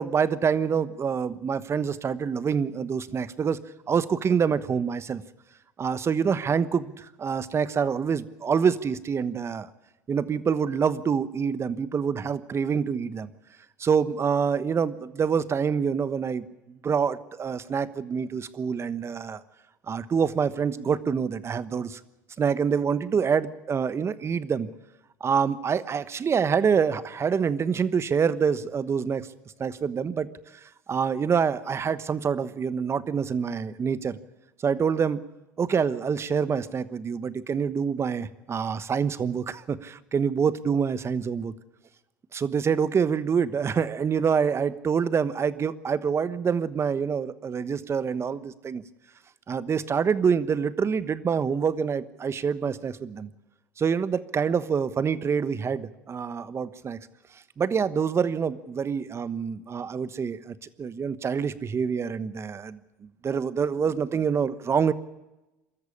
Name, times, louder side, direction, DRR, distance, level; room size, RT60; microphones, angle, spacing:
voice 1, 0.0-3.6 3.9-5.2 5.8-9.7 10.1-13.3 13.8-19.4 19.9-22.0 22.4-24.7 25.2-29.2 29.6-30.3 30.9-34.2 34.6-35.2 35.6-41.5 42.3-48.8 49.5-53.3 53.8-57.1 57.6-62.8 63.2-64.9, right 6 dB, 30° right, 15 dB, 1.2 m, -26 dB
23.5 x 13.5 x 8.6 m, 1.0 s
hypercardioid pair, 80°, 9 cm